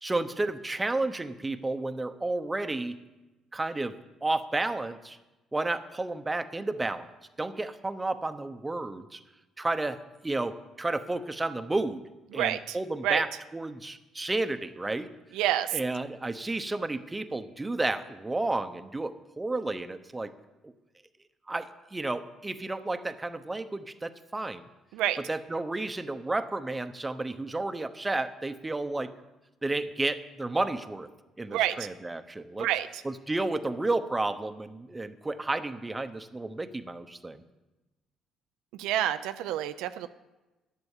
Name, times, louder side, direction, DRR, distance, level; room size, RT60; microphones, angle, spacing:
voice 1, 0.0-3.0 3.5-3.9 4.2-5.2 5.5-7.1 7.4-9.2 9.6-10.0 10.2-12.0 12.3-15.1 15.7-20.3 20.6-20.7 21.5-24.7 25.2-29.1 29.6-31.1 31.4-32.7 33.0-37.4, right 2 dB, 20° right, 9 dB, 0.9 m, -32 dB
voice 2, 12.3-12.8 13.0-13.2 15.3-15.7 24.9-25.2 31.5-31.8 32.6-32.9 38.8-40.1, right 12 dB, 85° right, 10 dB, 0.5 m, -28 dB
10.5 x 8.0 x 7.3 m, 1.1 s
supercardioid pair, 75°, 0 cm